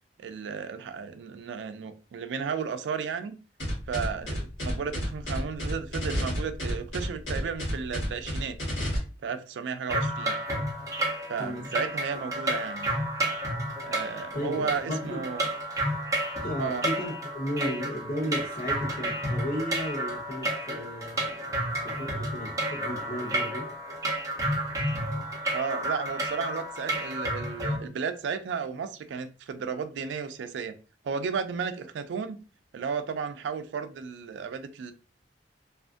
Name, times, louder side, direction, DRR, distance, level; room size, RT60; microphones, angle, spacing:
voice 1, 0.2-3.4 3.9-8.6 9.2-10.4 11.3-12.9 13.8-15.5 16.6-16.8 25.5-30.8 31.0-32.4 32.7-34.9, right 6 dB, 75° right, 0.3 m, -33 dB
sound 1, 3.6-9.0, equal, 75° left, 1.2 m, -31 dB
sound 2, 9.9-27.8, right 1 dB, 20° right, 0.7 m, -31 dB
voice 2, 11.4-11.7 14.3-15.3 16.4-23.7, equal, 55° left, 0.9 m, -34 dB
2.4 x 2.4 x 2.4 m
head